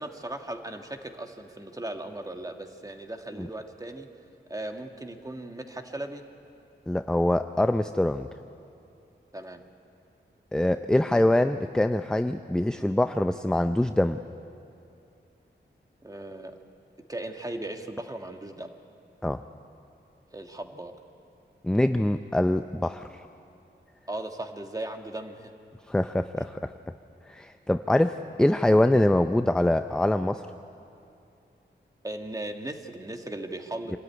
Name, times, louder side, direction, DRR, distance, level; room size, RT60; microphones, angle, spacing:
voice 1, 0.0-4.1 4.5-6.2 9.3-9.6 16.0-16.5 17.1-18.7 20.3-20.9 24.1-25.5 32.0-34.0, right 1 dB, 20° right, 4 dB, 1.6 m, -37 dB
voice 2, 6.9-8.3 10.5-14.2 19.2-19.4 21.6-23.1 25.9-26.7 27.3-30.5, left 1 dB, 5° left, 9 dB, 0.5 m, -24 dB
25.0 x 13.5 x 9.6 m, 2.6 s
wide cardioid pair, 80°, 19 cm